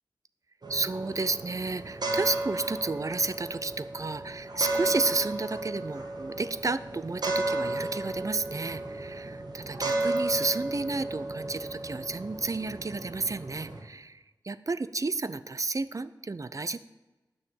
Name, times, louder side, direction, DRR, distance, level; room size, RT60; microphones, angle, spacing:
sound 1, 0.6-13.8, right 2 dB, 65° right, 1.7 m, -34 dB
voice 1, 0.7-16.8, right 3 dB, 45° right, 14 dB, 0.5 m, -32 dB
9.8 x 6.5 x 7.4 m, 1.1 s
wide cardioid pair, 65°, 8 cm